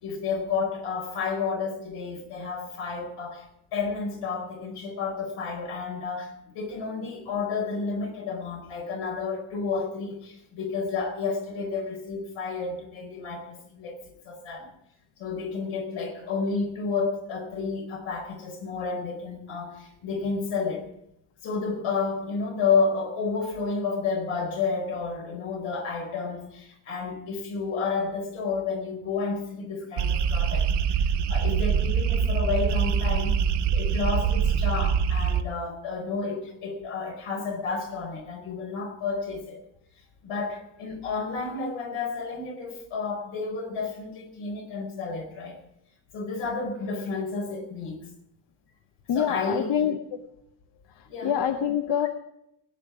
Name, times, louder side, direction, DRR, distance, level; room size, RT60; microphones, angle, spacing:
voice 1, 0.0-3.5 3.7-14.0 14.2-14.7 15.2-20.9 21.4-30.7 31.3-39.6 40.2-45.6 46.1-48.0 49.1-49.8 51.1-51.3, left 4 dB, 80° left, 3 dB, 4.5 m, -31 dB
sound 1, 30.0-35.4, right 7 dB, 55° right, 0.9 m, -24 dB
voice 2, 49.1-50.2 51.2-52.1, left 9 dB, 55° left, 6 dB, 0.9 m, -26 dB
18.5 x 9.3 x 4.8 m, 0.79 s
cardioid pair, 170°, 50 cm